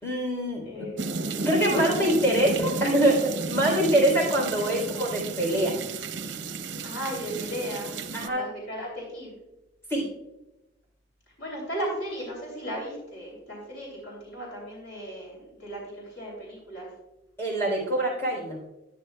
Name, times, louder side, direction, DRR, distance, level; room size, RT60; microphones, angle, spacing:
voice 1, 0.0-0.7 1.4-5.8 6.7-6.9 8.1-8.5 9.9-10.1 17.4-18.6, right 1 dB, 15° left, -3 dB, 3.5 m, -24 dB
voice 2, 0.6-1.1 1.6-2.0 2.3-2.5 3.6-3.8 6.6-9.4 11.4-16.9, equal, 80° left, -3 dB, 3.1 m, -36 dB
sound 1, 1.0-8.3, right 4 dB, 80° right, 0.7 m, -33 dB
11.5 x 10.0 x 2.3 m, 0.99 s
head